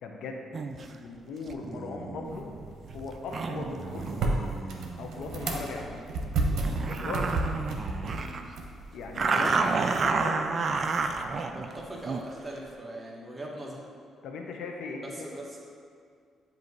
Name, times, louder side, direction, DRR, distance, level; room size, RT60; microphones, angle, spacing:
voice 1, 0.0-2.5 2.9-4.3 5.0-6.0 6.8-7.3 8.9-9.5 9.8-10.5 14.2-15.3, left 3 dB, 75° left, 2 dB, 0.6 m, -38 dB
sound 1, 0.5-0.9 1.5-5.7 6.2-6.3 6.6-8.5 9.2-12.3, right 4 dB, 45° right, 0.4 m, -31 dB
sound 2, 2.2-9.2, right 2 dB, 75° right, 0.8 m, -33 dB
voice 2, 8.1-8.5 9.3-10.2 11.5-13.8 15.0-15.6, right 1 dB, 20° right, -3 dB, 1.2 m, -41 dB
7.8 x 2.7 x 4.6 m, 2.2 s
cardioid pair, 90°, 0 cm